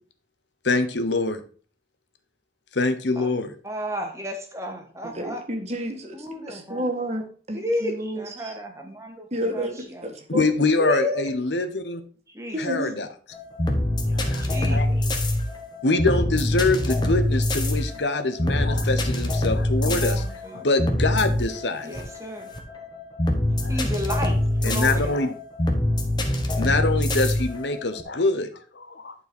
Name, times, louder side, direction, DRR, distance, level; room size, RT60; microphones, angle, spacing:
voice 1, 0.6-1.4 2.7-3.5 10.3-12.0 12.6-13.1 14.1-14.5 14.7-14.9 15.8-20.2 20.5-22.0 23.6-23.8 24.6-25.3 26.6-28.5 28.7-29.1, left 3 dB, 80° left, 1.1 m, -24 dB
voice 2, 3.6-5.4 6.1-6.8 7.5-10.1 10.8-11.3 12.3-12.6 14.4-15.0 19.8-20.7 21.8-22.5 23.7-24.4 24.6-25.1, left 1 dB, 15° right, 1.6 m, -32 dB
voice 3, 5.0-8.5 9.3-10.4 12.5-12.9, equal, 35° right, 1.6 m, -31 dB
sound 1, 13.3-28.0, left 1 dB, 25° left, 1.2 m, -24 dB
11.5 x 4.6 x 4.5 m
head